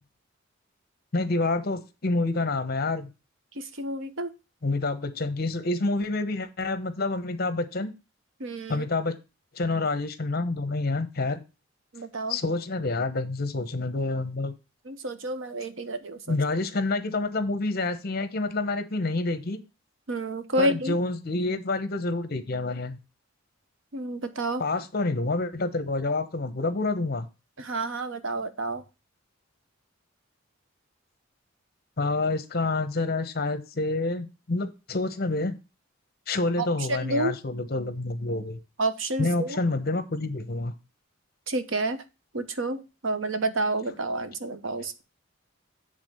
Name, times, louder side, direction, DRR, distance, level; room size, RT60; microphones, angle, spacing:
voice 1, 1.1-3.1 4.6-7.9 8.7-9.2 9.5-11.4 12.3-14.5 16.3-19.6 20.6-23.0 24.6-27.3 32.0-35.6 36.3-38.6 39.2-40.7, left 2 dB, 50° left, 11 dB, 1.0 m, -28 dB
voice 2, 3.6-4.3 8.4-8.8 11.9-12.4 14.9-16.4 20.1-21.0 23.9-24.6 27.6-28.8 36.6-37.3 38.8-39.6 41.5-42.0 42.3-45.0, right 2 dB, 70° right, 10 dB, 1.0 m, -29 dB
8.2 x 3.7 x 6.7 m, 0.29 s
head